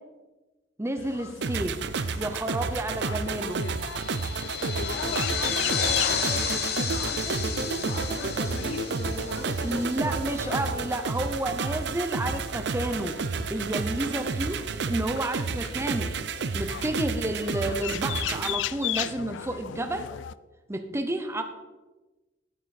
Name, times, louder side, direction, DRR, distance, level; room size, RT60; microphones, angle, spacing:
voice 1, 0.8-1.8 2.1-3.6 9.6-13.2 13.5-14.6 14.9-16.1 16.5-20.1 20.7-21.4, right 1 dB, 15° right, 7 dB, 0.7 m, -30 dB
sound 1, 1.0-20.3, left 10 dB, 90° left, 0.3 m, -38 dB
sound 2, 1.4-18.5, right 4 dB, 65° right, 0.5 m, -31 dB
sound 3, 3.5-10.4, left 6 dB, 60° left, 1.3 m, -32 dB
voice 2, 4.7-10.7, left 1 dB, 30° left, 2 dB, 1.3 m, -40 dB
10.5 x 8.9 x 4.2 m, 1.2 s
head